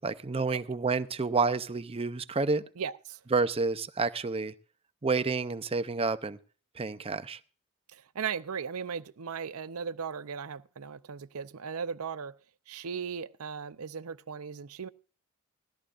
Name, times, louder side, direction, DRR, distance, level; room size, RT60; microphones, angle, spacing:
voice 1, 0.0-2.6 3.3-4.5 5.0-6.4 6.8-7.4, right 4 dB, 25° right, 0.6 m, -29 dB
voice 2, 2.8-3.2 7.9-12.4 12.7-14.9, right 6 dB, 75° right, 0.6 m, -37 dB
18.5 x 13.5 x 2.5 m
head